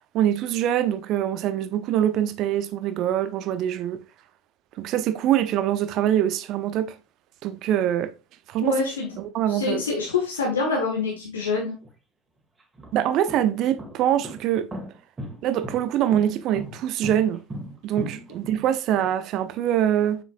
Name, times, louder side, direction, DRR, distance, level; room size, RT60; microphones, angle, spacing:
voice 1, 0.1-4.0 4.8-7.0 7.4-8.1 8.5-8.8 9.2-9.8 12.9-14.7 15.4-17.4 17.8-20.2, right 11 dB, 50° right, 0.7 m, -24 dB
voice 2, 8.6-9.1 9.5-11.7, left 4 dB, 80° left, 1.5 m, -26 dB
sound 1, 11.8-11.9 12.6-19.1, right 1 dB, 20° right, 2.0 m, -36 dB
7.0 x 6.0 x 2.5 m
figure-of-eight pair, 70°, 0 cm